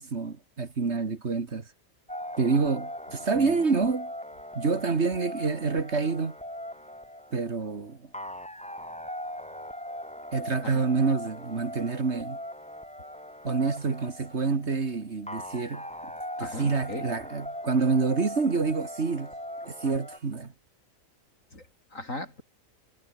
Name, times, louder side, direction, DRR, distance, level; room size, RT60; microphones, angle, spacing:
voice 1, 0.0-1.7 2.4-4.1 4.5-6.4 7.3-8.0 10.3-12.4 13.4-15.9 16.4-19.3 19.6-20.5, right 4 dB, 55° right, 2.1 m, -27 dB
sound 1, 2.1-20.2, equal, 5° left, 2.0 m, -40 dB
voice 2, 16.4-17.1 21.5-22.4, left 1 dB, 65° left, 7.8 m, -38 dB
omnidirectional pair, 1.4 m